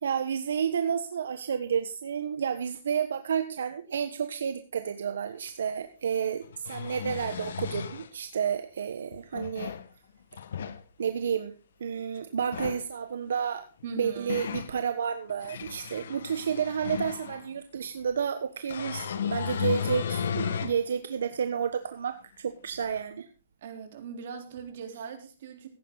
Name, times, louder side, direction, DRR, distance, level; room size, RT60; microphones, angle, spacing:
voice 1, 0.0-9.7 11.0-11.5 11.8-13.7 14.0-23.3, right 7 dB, 85° right, 9 dB, 1.2 m, -31 dB
sound 1, 5.5-5.6 6.4-8.1 9.1-9.9 10.3-10.8 12.4-12.9 13.8-14.7 15.3-17.5 18.7-20.8 21.3-21.4 23.0-23.1, left 8 dB, 75° left, 1.5 m, -34 dB
voice 2, 13.8-14.4 23.6-25.7, right 6 dB, 55° right, 5 dB, 3.9 m, -40 dB
15.5 x 10.5 x 4.0 m, 0.33 s
hypercardioid pair, 160°, 0 cm